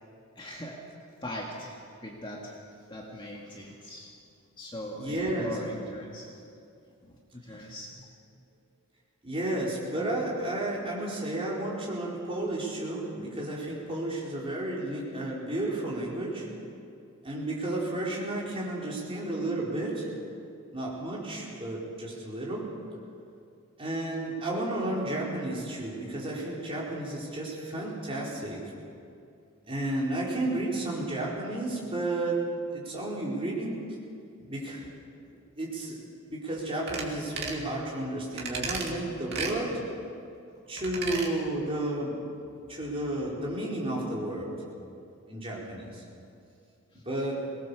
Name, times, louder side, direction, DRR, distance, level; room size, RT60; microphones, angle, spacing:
voice 1, 0.4-0.8 1.2-2.6 2.9-4.2 4.6-6.4 7.0-8.1 46.9-47.0, equal, 20° left, -2 dB, 2.0 m, -40 dB
voice 2, 5.0-5.6 7.6-7.7 9.2-16.5 17.2-20.1 20.7-22.7 23.8-28.7 29.7-33.8 34.4-34.9 35.3-36.0 36.3-39.9 40.7-42.2 42.7-44.6 45.3-46.0 46.9-47.4, right 1 dB, 25° right, -4 dB, 4.6 m, -32 dB
sound 1, 36.9-37.1 37.4-37.6 38.4-38.9 39.3-39.6 40.8-41.3 41.6-41.7, right 4 dB, 50° right, 2.7 m, -34 dB
23.0 x 19.5 x 7.0 m, 2.5 s
head